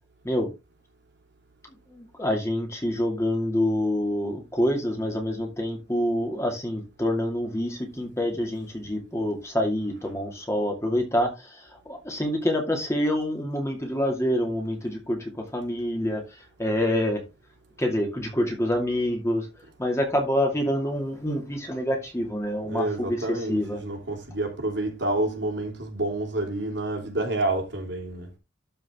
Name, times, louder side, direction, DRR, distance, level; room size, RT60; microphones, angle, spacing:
voice 1, 1.9-17.2 17.8-19.5 19.8-23.8, left 1 dB, 15° left, 2.4 m, -27 dB
voice 2, 22.7-28.3, right 2 dB, 65° right, 3.3 m, -29 dB
12.5 x 5.3 x 3.6 m
head